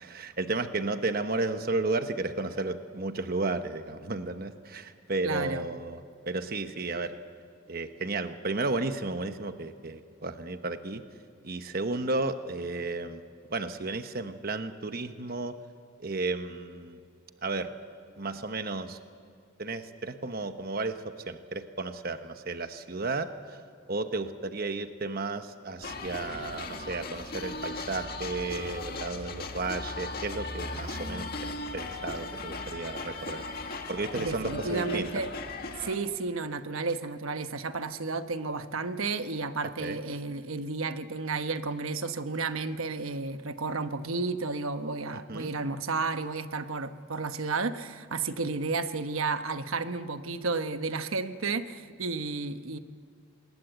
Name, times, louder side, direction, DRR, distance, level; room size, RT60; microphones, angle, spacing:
voice 1, 0.0-7.2 7.7-11.0 11.4-13.2 13.5-15.5 16.0-17.0 17.4-17.7 18.2-19.0 19.6-23.6 23.9-33.4 33.9-35.1 39.8-40.0 45.3-45.5, right 3 dB, 45° right, 8 dB, 1.1 m, -33 dB
voice 2, 5.2-5.6 34.2-35.3 35.8-52.8, right 3 dB, 80° right, 9 dB, 1.1 m, -32 dB
sound 1, 25.8-36.0, left 2 dB, 45° left, 1.9 m, -37 dB
27.0 x 21.0 x 8.1 m, 2.3 s
head